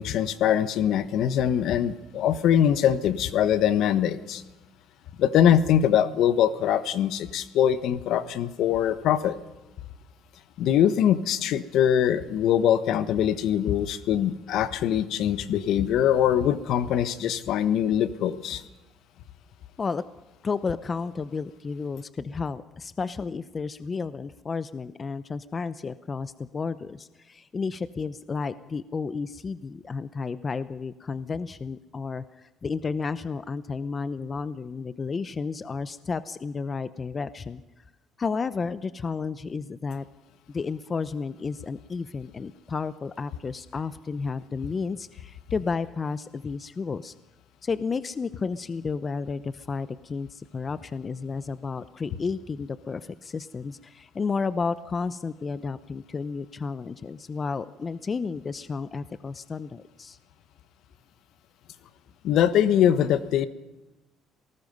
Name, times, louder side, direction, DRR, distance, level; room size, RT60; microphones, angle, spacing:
voice 1, 0.0-4.4 5.2-9.4 10.6-18.6 62.2-63.5, left 10 dB, 70° left, 13 dB, 1.2 m, -23 dB
voice 2, 20.4-37.6 38.2-40.1 40.5-47.1 47.6-60.2, left 4 dB, 30° left, 14 dB, 0.8 m, -32 dB
27.0 x 19.0 x 5.4 m, 1.0 s
cardioid pair, 105°, 0 cm